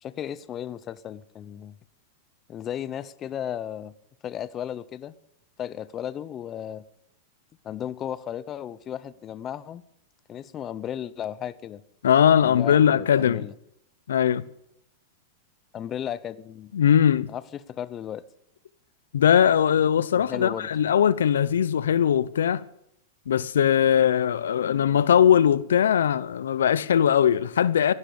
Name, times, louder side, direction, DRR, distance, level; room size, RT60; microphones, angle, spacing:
voice 1, 0.0-1.7 2.5-3.9 4.2-5.1 5.6-6.8 7.6-9.8 10.3-11.8 12.4-13.5 15.7-16.7 17.3-18.2 20.1-20.7, left 10 dB, 30° left, 0.7 m, -35 dB
voice 2, 12.0-13.5 14.1-14.4 16.7-17.3 19.1-22.6 23.3-27.9, left 9 dB, 85° left, 0.7 m, -20 dB
15.0 x 12.0 x 7.1 m
hypercardioid pair, 120°, 0 cm